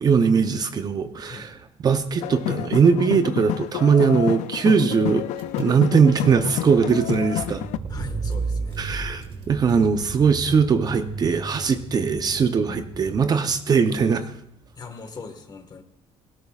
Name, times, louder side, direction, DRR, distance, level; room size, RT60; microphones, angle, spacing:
voice 1, 0.0-1.6 1.8-5.3 5.6-7.6 8.8-14.2, right 6 dB, 35° right, 9 dB, 0.7 m, -20 dB
sound 1, 2.2-7.8, left 15 dB, 80° left, 0.4 m, -29 dB
Car / Engine, 5.4-13.7, right 4 dB, 55° right, 2.4 m, -34 dB
voice 2, 7.9-8.8 14.8-15.8, left 4 dB, 35° left, 7 dB, 1.6 m, -40 dB
17.5 x 17.0 x 2.4 m, 0.78 s
cardioid pair, 140°, 12 cm